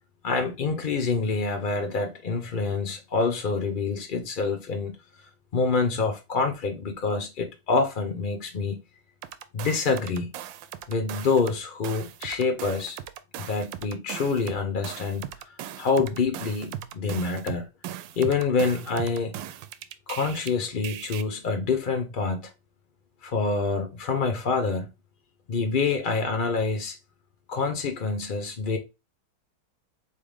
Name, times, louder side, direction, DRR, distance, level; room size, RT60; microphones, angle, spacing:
voice 1, 0.2-4.9 5.5-8.8 9.5-10.3 10.9-13.0 13.4-17.7 18.2-19.4 20.1-22.5 23.2-24.9 25.5-27.0 27.5-28.8, left 4 dB, 55° left, 0.5 m, -26 dB
sound 1, 9.2-11.6 11.8-20.5 20.8-21.2, right 11 dB, 90° right, 1.3 m, -38 dB
4.0 x 3.4 x 3.4 m
omnidirectional pair, 2.0 m